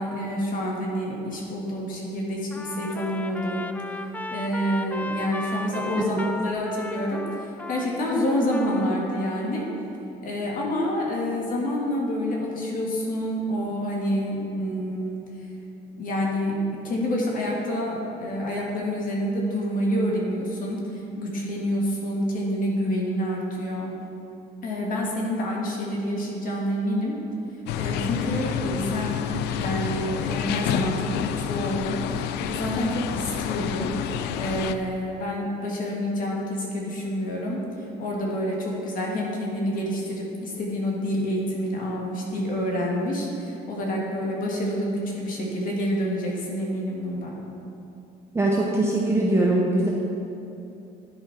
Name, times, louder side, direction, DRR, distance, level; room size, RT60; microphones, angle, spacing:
voice 1, 0.0-3.7 4.3-9.7 10.2-15.2 16.0-16.5 16.8-23.9 24.6-27.2 27.7-29.2 29.5-47.3, equal, 55° left, -2 dB, 1.8 m, -28 dB
Trumpet, 2.5-9.6, left 1 dB, 10° left, 0.3 m, -36 dB
sound 1, 27.7-34.7, left 9 dB, 85° left, 0.4 m, -29 dB
voice 2, 48.3-49.9, right 2 dB, 15° right, -3 dB, 0.8 m, -22 dB
10.5 x 5.2 x 4.4 m, 2.9 s
cardioid pair, 110°, 17 cm